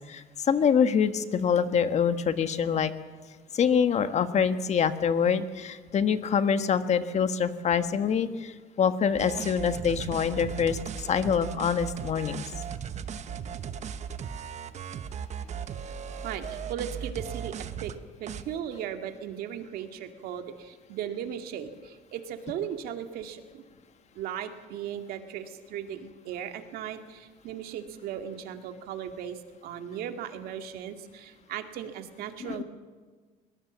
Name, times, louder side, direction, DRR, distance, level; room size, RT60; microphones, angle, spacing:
voice 1, 0.1-2.9 3.5-12.5 32.4-32.6, left 7 dB, 45° left, 10 dB, 1.5 m, -25 dB
sound 1, 9.1-17.9 18.3-18.4, right 7 dB, 45° right, 1.2 m, -37 dB
voice 2, 16.2-17.5 17.8-17.9 18.2-23.6 24.2-32.6, right 9 dB, 75° right, 6 dB, 2.2 m, -37 dB
21.5 x 19.5 x 7.4 m, 1.4 s
cardioid pair, 100°, 16 cm